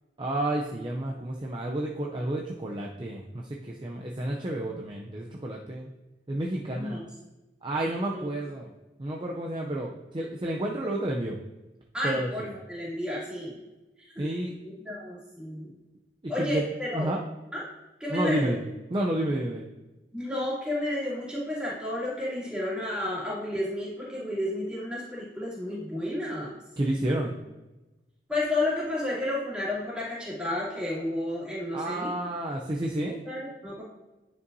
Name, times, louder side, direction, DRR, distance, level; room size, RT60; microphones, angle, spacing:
voice 1, 0.2-5.9 6.3-7.0 7.6-8.7 9.0-11.4 12.0-12.3 14.2-14.5 16.4-16.6 16.9-17.2 18.1-19.7 26.8-27.4 31.7-33.2, right 1 dB, 25° right, -1 dB, 0.5 m, -30 dB
voice 2, 6.7-7.0 7.8-8.3 11.9-13.6 14.1-14.3 14.6-15.7 16.3-17.1 17.5-17.6 18.0-18.5 20.1-26.5 28.3-32.1 33.3-33.8, left 1 dB, 5° right, -8 dB, 2.5 m, -32 dB
9.7 x 5.3 x 2.7 m, 1.1 s
head